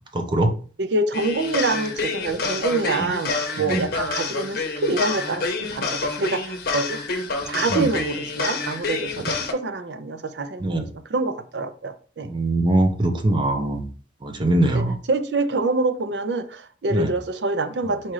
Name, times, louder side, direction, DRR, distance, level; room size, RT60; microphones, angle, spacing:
voice 1, 0.1-0.5 3.7-3.8 7.7-7.9 10.6-10.8 12.3-13.8 14.2-15.0 16.9-17.1, right 1 dB, 25° right, 0.7 m, -21 dB
voice 2, 0.8-7.0 7.5-12.3 14.7-18.1, right 3 dB, 75° right, 0.5 m, -26 dB
sound 1, 1.1-9.5, left 3 dB, 60° left, 0.8 m, -28 dB
4.2 x 2.5 x 4.7 m
head